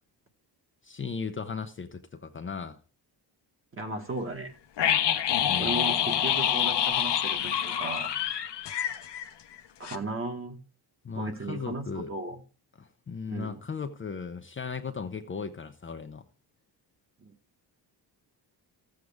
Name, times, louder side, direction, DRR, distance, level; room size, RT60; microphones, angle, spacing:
voice 1, 0.8-2.8 5.4-5.8 11.0-12.1 12.8-16.2, left 5 dB, 30° left, 0.7 m, -37 dB
voice 2, 3.7-4.5 5.6-8.1 9.8-10.6 11.1-12.4 13.3-13.6 17.2-17.3, right 2 dB, 30° right, 1.7 m, -35 dB
sound 1, 4.8-9.6 9.8-10.0, left 10 dB, 75° left, 1.1 m, -27 dB
14.0 x 8.0 x 3.5 m
cardioid pair, 130°, 42 cm